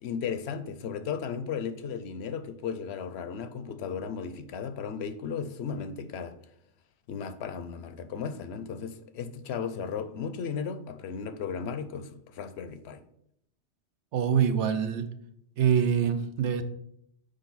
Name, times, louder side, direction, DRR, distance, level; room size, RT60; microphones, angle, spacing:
voice 1, 0.0-6.3 7.1-13.0, left 6 dB, 70° left, 0.9 m, -35 dB
voice 2, 14.1-15.1 15.6-16.6, right 8 dB, 80° right, 1.0 m, -25 dB
6.6 x 4.9 x 4.0 m
omnidirectional pair, 1.2 m